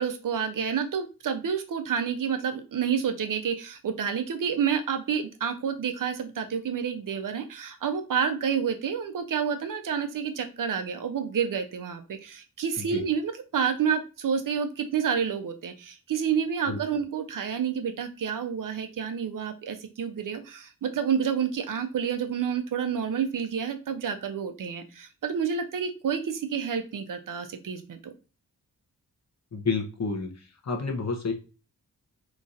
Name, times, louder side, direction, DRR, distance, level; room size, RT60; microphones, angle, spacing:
voice 1, 0.0-28.0, right 7 dB, 65° right, 8 dB, 0.6 m, -29 dB
voice 2, 29.5-30.3 30.7-31.3, left 4 dB, 50° left, 4 dB, 0.9 m, -29 dB
3.0 x 2.5 x 3.9 m, 0.32 s
wide cardioid pair, 110°, 35 cm